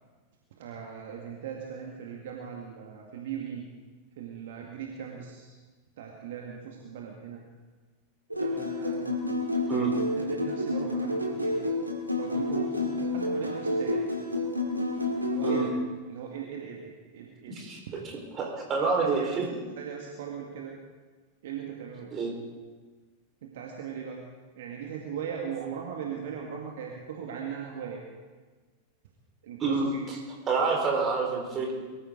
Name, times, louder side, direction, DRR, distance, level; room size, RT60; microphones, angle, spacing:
voice 1, 0.6-3.7 4.2-5.5 6.0-7.4 8.4-9.0 10.1-11.6 12.2-14.0 15.3-15.7 16.1-17.6 19.0-19.4 19.8-20.7 21.4-22.1 23.4-24.2 24.6-28.0 29.4-30.0, right 7 dB, 55° right, 0 dB, 2.0 m, -39 dB
sound 1, 8.3-15.7, left 2 dB, 85° right, 2.0 m, -29 dB
voice 2, 17.5-17.8 18.4-19.5 22.1-22.3 29.6-30.2 30.5-31.7, right 4 dB, 30° right, 0 dB, 4.5 m, -27 dB
22.5 x 14.5 x 3.9 m, 1.4 s
figure-of-eight pair, 90°, 0 cm